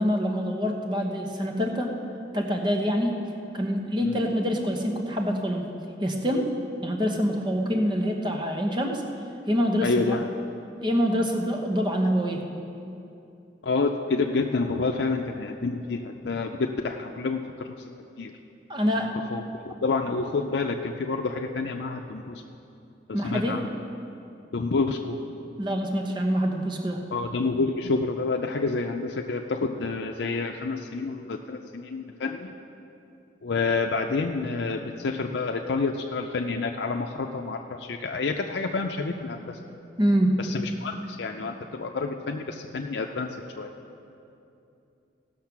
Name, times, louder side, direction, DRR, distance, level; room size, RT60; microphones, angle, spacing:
voice 1, 0.0-1.9 2.3-3.1 3.5-5.6 6.0-6.5 6.8-9.0 9.5-10.2 10.8-12.5 18.7-19.1 23.1-23.6 25.6-27.0 40.0-40.3, equal, 25° right, 2 dB, 1.0 m, -25 dB
voice 2, 9.8-10.3 13.6-17.7 18.2-18.3 19.3-22.4 23.1-23.7 24.5-25.2 27.1-32.5 33.4-39.6 40.4-43.7, left 3 dB, 80° left, 3 dB, 0.5 m, -28 dB
17.0 x 6.5 x 5.9 m, 2.7 s
head